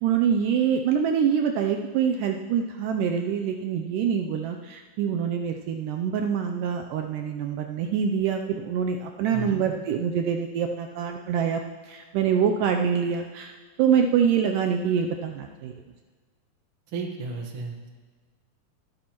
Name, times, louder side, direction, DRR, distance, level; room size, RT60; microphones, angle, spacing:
voice 1, 0.0-15.7, right 7 dB, 85° right, 4 dB, 1.9 m, -25 dB
voice 2, 9.3-9.7 16.9-17.9, right 4 dB, 60° right, 2 dB, 1.3 m, -34 dB
19.5 x 11.5 x 3.0 m, 1.5 s
omnidirectional pair, 4.3 m